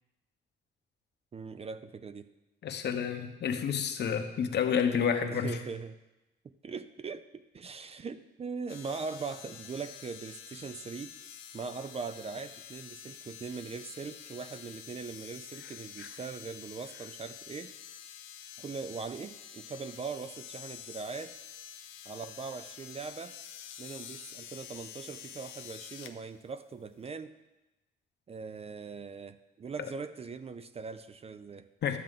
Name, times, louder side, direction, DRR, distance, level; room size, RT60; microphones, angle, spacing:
voice 1, 1.3-2.3 4.7-4.9 5.3-6.0 6.6-11.1 11.5-17.7 18.6-21.4 22.1-23.4 23.8-27.4 28.3-31.7, right 5 dB, 30° right, 12 dB, 0.4 m, -41 dB
voice 2, 2.6-5.6 16.0-16.1 31.8-32.0, left 7 dB, 60° left, 7 dB, 1.0 m, -29 dB
sound 1, 8.7-26.1 27.0-27.1, left 9 dB, 85° left, 0.7 m, -48 dB
12.0 x 7.5 x 3.7 m, 1.0 s
cardioid pair, 90°, 20 cm